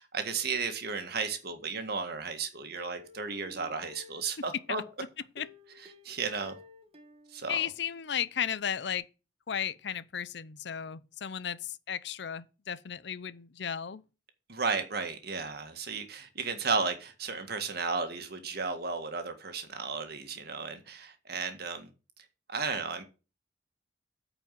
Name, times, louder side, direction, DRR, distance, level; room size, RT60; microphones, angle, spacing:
voice 1, 0.0-4.8 6.0-6.6 7.3-7.6 14.5-21.9 22.5-23.0, right 4 dB, 60° right, 1.8 m, -34 dB
Plucked string instrument, 2.8-4.7 5.4-8.2 8.5-8.6 8.9-9.0, left 2 dB, 35° right, 1.6 m, -52 dB
voice 2, 7.5-9.0 9.5-14.0, left 8 dB, 65° left, 0.6 m, -34 dB
9.0 x 5.0 x 7.5 m
head